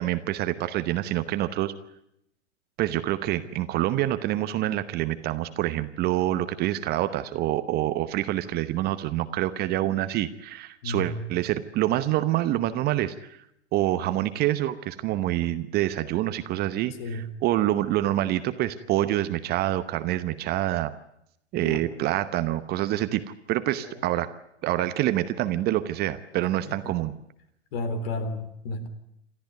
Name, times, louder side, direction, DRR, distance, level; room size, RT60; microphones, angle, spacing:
voice 1, 0.0-1.7 2.8-13.4 13.7-20.9 21.5-24.3 24.6-27.1, right 14 dB, 25° right, 12 dB, 0.9 m, -26 dB
voice 2, 10.8-11.3 17.0-17.3 21.6-21.8 23.8-23.9 26.7-26.8 27.7-28.9, left 2 dB, 50° left, 11 dB, 3.8 m, -32 dB
28.0 x 14.0 x 9.3 m, 0.76 s
hypercardioid pair, 115°, 36 cm